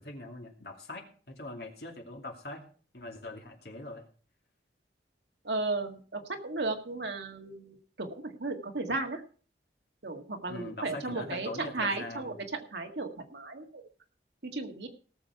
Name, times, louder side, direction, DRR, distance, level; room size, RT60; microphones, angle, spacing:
voice 1, 0.0-2.6 2.9-4.1 10.5-12.4, left 2 dB, 65° left, 2 dB, 2.4 m, -42 dB
voice 2, 5.5-9.2 10.0-12.3 12.7-13.8 14.5-14.9, right 3 dB, 80° right, 4 dB, 1.8 m, -35 dB
18.0 x 7.1 x 4.7 m, 0.42 s
head